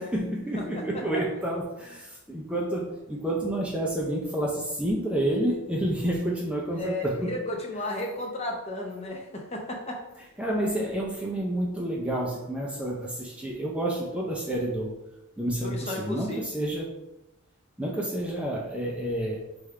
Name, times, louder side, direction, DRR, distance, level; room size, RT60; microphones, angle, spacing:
voice 1, 0.0-7.3 10.4-15.0 15.4-16.9 17.8-19.4, right 1 dB, 5° right, -2 dB, 0.5 m, -29 dB
voice 2, 6.7-10.0 15.6-16.4, left 2 dB, 30° left, 1 dB, 0.7 m, -33 dB
3.5 x 3.2 x 4.7 m, 0.95 s
head